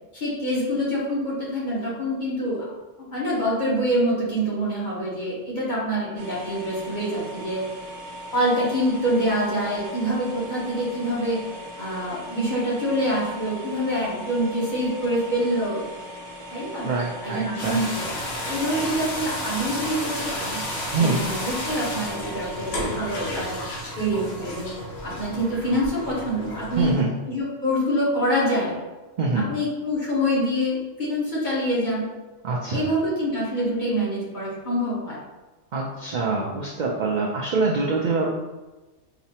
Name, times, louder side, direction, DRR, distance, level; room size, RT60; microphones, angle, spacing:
voice 1, 0.1-2.7 3.1-7.6 8.3-11.4 11.8-15.8 16.5-16.9 17.2-18.1 18.4-20.6 21.0-23.6 24.0-24.7 25.0-26.9 27.3-28.8 29.5-32.0 32.7-35.2, equal, 40° left, -8 dB, 1.2 m, -25 dB
sound 1, 6.2-23.5, equal, 85° right, 1.1 m, -39 dB
voice 2, 16.8-17.8 18.4-18.8 20.9-21.2 26.7-27.1 29.2-29.5 32.4-32.8 35.7-38.3, right 3 dB, 65° right, -3 dB, 0.4 m, -25 dB
sound 2, 17.6-27.0, left 1 dB, 60° left, 1.0 m, -32 dB
4.9 x 2.0 x 2.8 m, 1.2 s
omnidirectional pair, 1.3 m